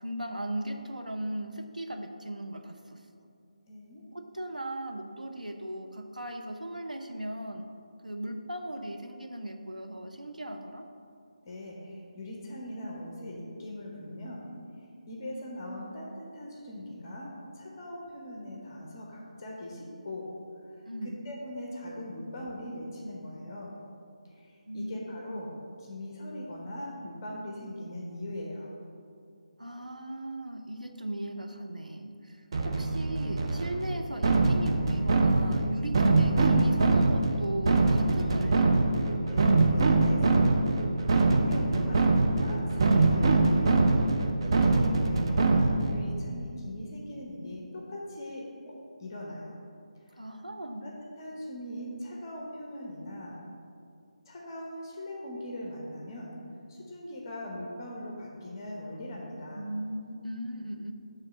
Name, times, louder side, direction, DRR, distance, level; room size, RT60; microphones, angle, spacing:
voice 1, 0.0-3.0 4.1-7.7 8.0-10.9 20.9-21.2 24.7-25.4 29.6-38.8 50.2-50.9 59.5-60.9, right 1 dB, 85° right, 4 dB, 0.7 m, -37 dB
voice 2, 3.7-4.0 11.4-14.5 15.1-20.3 21.0-23.7 24.3-25.5 25.8-28.7 39.3-40.7 41.2-43.9 44.4-49.6 50.1-50.2 50.8-53.4 54.3-56.4 56.7-59.7, left 1 dB, 30° left, -2 dB, 0.9 m, -41 dB
sound 1, 32.5-46.0, right 3 dB, 40° right, 0.5 m, -24 dB
7.5 x 3.2 x 6.2 m, 2.5 s
figure-of-eight pair, 155°, 4 cm